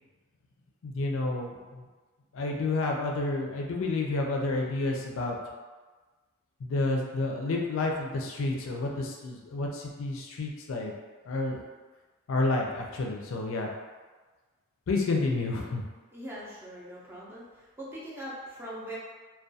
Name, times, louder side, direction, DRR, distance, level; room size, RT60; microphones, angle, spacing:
voice 1, 0.8-1.8 2.3-5.4 6.6-10.9 11.3-11.6 12.3-13.7 14.9-15.8, left 2 dB, 75° left, 0 dB, 0.4 m, -30 dB
voice 2, 16.1-19.0, equal, 10° right, -7 dB, 0.4 m, -41 dB
2.3 x 2.2 x 2.6 m, 1.3 s
head